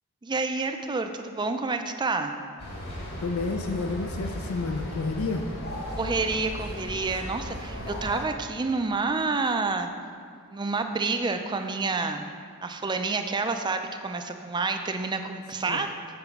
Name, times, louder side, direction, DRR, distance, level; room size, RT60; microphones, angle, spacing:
voice 1, 0.2-2.3 6.0-9.9 10.5-12.3 12.6-15.9, right 3 dB, 20° right, 6 dB, 0.4 m, -28 dB
sound 1, 2.6-8.3, equal, 45° left, 2.0 m, -36 dB
voice 2, 3.2-5.5 15.7-15.8, left 3 dB, 65° left, 5 dB, 0.4 m, -30 dB
7.8 x 5.0 x 5.8 m, 2.1 s
head